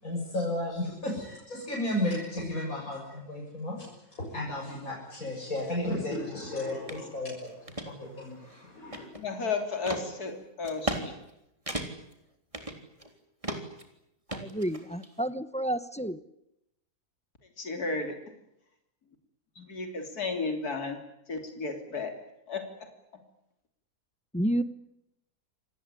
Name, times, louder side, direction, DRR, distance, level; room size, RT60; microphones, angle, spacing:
voice 1, 0.0-9.1, left 1 dB, 65° left, 7.4 m, -34 dB
sound 1, 6.9-7.0 7.5-7.9 8.4-9.4 9.9-10.0 10.6-11.0 11.3-11.4 11.7-12.1 12.5-13.1 13.4-13.8 14.3-15.1, right 1 dB, 20° right, 3.7 m, -35 dB
voice 2, 9.1-11.1 17.6-18.2 19.6-21.0 21.3-22.1 22.5-22.9, left 4 dB, 80° left, 3.7 m, -33 dB
voice 3, 14.3-16.2 24.3-24.6, right 1 dB, 5° left, 0.9 m, -30 dB
28.0 x 19.5 x 9.9 m
omnidirectional pair, 1.6 m